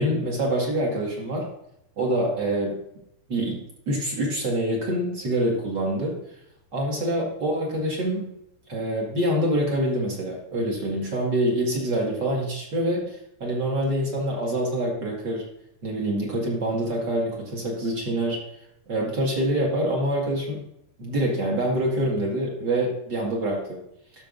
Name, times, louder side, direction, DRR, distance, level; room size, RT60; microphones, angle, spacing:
voice 1, 0.0-1.5 2.0-2.8 3.3-3.6 3.8-6.2 6.7-8.4 8.7-15.4 15.8-18.4 18.9-20.6 21.0-23.8, right 1 dB, 40° right, -2 dB, 1.8 m, -25 dB
14.0 x 6.3 x 2.6 m, 0.78 s
omnidirectional pair, 4.5 m